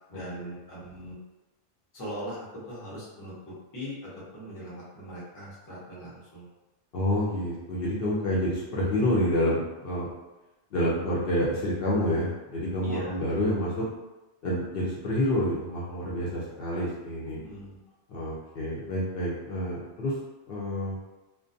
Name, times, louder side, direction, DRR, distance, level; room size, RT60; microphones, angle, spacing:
voice 1, 0.1-1.2 1.9-6.5 12.8-13.2 17.3-17.8, equal, 20° left, -8 dB, 0.6 m, -40 dB
voice 2, 6.9-10.1 10.7-13.8 14.4-17.4 18.1-20.1 20.5-21.0, left 1 dB, 60° left, -6 dB, 0.8 m, -28 dB
2.4 x 2.2 x 2.5 m, 1.0 s
omnidirectional pair, 1.2 m